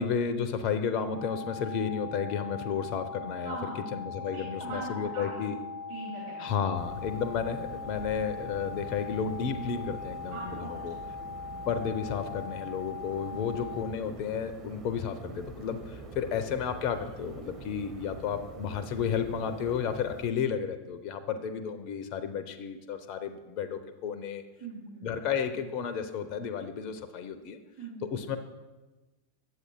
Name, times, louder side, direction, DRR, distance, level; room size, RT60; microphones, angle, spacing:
voice 1, 0.0-5.5 6.4-11.0 11.7-24.4 25.0-27.6 28.0-28.4, left 7 dB, 40° left, 9 dB, 0.5 m, -32 dB
sound 1, 1.1-13.8, left 5 dB, 70° right, 1.4 m, -41 dB
voice 2, 3.4-3.9 4.2-5.4 5.9-6.6 10.3-11.7 13.3-13.5 24.6-25.1 27.8-28.2, right 3 dB, 45° right, -4 dB, 2.1 m, -42 dB
sound 2, 6.7-20.3, right 3 dB, 30° right, 1.1 m, -46 dB
8.3 x 7.8 x 3.0 m, 1.2 s
figure-of-eight pair, 90°, 0 cm